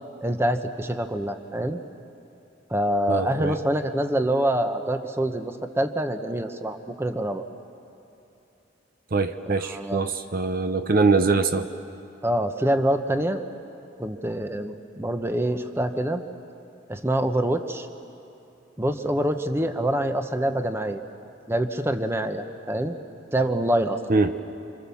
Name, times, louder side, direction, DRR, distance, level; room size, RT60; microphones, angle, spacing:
voice 1, 0.2-1.8 2.7-7.4 9.4-10.1 12.2-13.4 14.0-16.2 16.9-17.9 18.8-21.0 21.5-23.0 23.3-24.0, right 1 dB, 15° right, 7 dB, 1.0 m, -25 dB
voice 2, 3.1-3.6 9.1-11.7 24.1-24.3, right 3 dB, 50° right, 9 dB, 0.8 m, -23 dB
27.0 x 27.0 x 7.1 m, 2.9 s
head